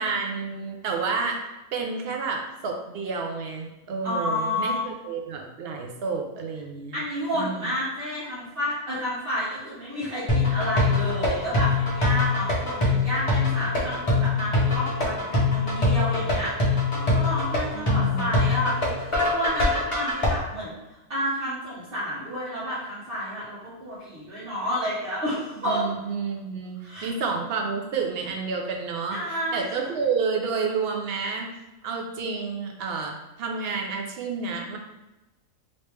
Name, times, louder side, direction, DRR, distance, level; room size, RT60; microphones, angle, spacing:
voice 1, 0.0-1.4 1.7-7.0 7.3-7.6 17.7-18.4 25.7-29.2 29.5-31.5 31.8-34.8, right 5 dB, 60° right, 1 dB, 0.6 m, -30 dB
voice 2, 4.0-4.8 6.9-20.7 21.1-25.9 26.8-27.1 29.1-30.0, equal, 45° right, -9 dB, 1.2 m, -30 dB
sound 1, 10.3-20.3, left 3 dB, 30° left, 0.7 m, -23 dB
3.1 x 2.9 x 3.2 m, 1.0 s
omnidirectional pair, 1.4 m